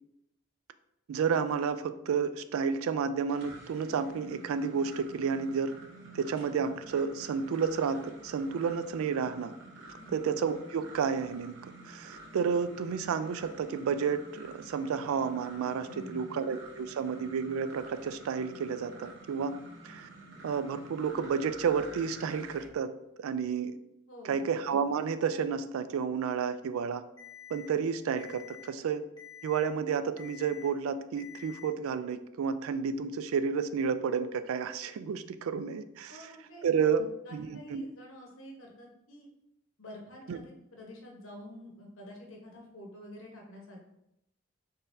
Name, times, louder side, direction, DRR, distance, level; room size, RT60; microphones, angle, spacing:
voice 1, 1.1-5.7 6.1-9.5 10.1-11.6 11.8-19.6 19.8-20.1 20.4-22.9 23.2-23.8 24.2-27.0 27.5-29.0 29.4-36.2 36.6-37.9 40.3-40.4, right 6 dB, 90° right, 12 dB, 0.3 m, -31 dB
sound 1, 3.3-22.7, right 2 dB, 60° right, 0.7 m, -50 dB
voice 2, 15.9-16.4 24.1-24.5 36.1-39.3 39.8-43.8, equal, 80° left, 0 dB, 1.0 m, -48 dB
Alarm, 27.2-27.7 28.2-28.7 29.2-29.7 30.2-30.7 31.2-31.7, left 10 dB, 20° left, 0.5 m, -49 dB
4.0 x 3.8 x 2.6 m, 0.83 s
head